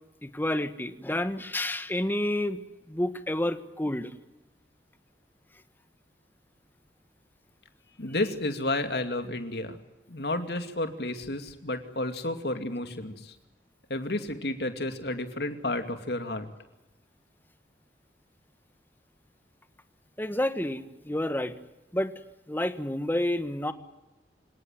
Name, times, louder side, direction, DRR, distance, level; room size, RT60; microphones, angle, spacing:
voice 1, 0.2-2.6 2.9-4.1 20.2-21.5 21.9-22.1 22.5-23.7, left 1 dB, 10° left, 10 dB, 1.4 m, -29 dB
voice 2, 8.0-9.8 10.1-13.3 13.9-16.5, left 2 dB, 65° left, 7 dB, 2.6 m, -31 dB
27.5 x 18.0 x 9.3 m, 1.0 s
head